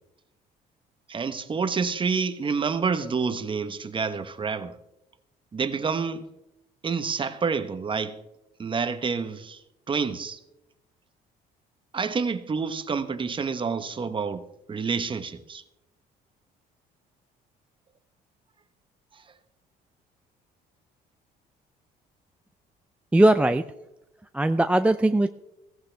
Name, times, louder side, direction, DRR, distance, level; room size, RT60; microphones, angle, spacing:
voice 1, 1.1-4.7 5.5-6.2 6.8-8.2 8.6-9.6 9.9-10.4 11.9-15.6, right 5 dB, 30° right, 1.0 m, -28 dB
voice 2, 23.1-23.6 24.3-25.3, right 1 dB, 5° right, 0.4 m, -19 dB
16.0 x 15.5 x 3.4 m
cardioid pair, 110°, 17 cm